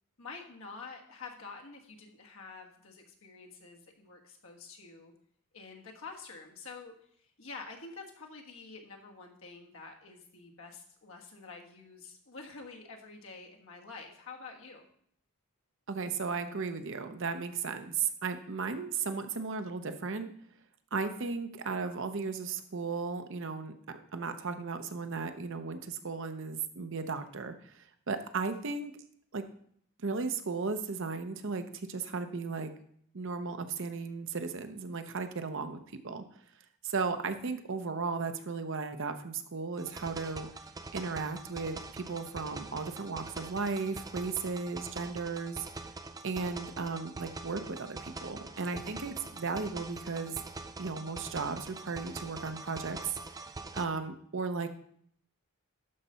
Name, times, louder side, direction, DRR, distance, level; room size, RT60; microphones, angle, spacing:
voice 1, 0.2-5.1 5.5-14.9, left 4 dB, 65° left, 1 dB, 1.5 m, -48 dB
voice 2, 15.9-20.3 20.9-28.9 29.3-29.4 30.0-32.7 33.1-35.8 36.0-36.2 36.8-40.5 40.9-45.7 46.2-50.4 50.8-53.1 53.7-54.7, right 4 dB, 55° right, 8 dB, 0.7 m, -35 dB
sound 1, 39.8-53.8, right 3 dB, 15° right, 0.4 m, -44 dB
12.0 x 4.1 x 5.6 m, 0.64 s
head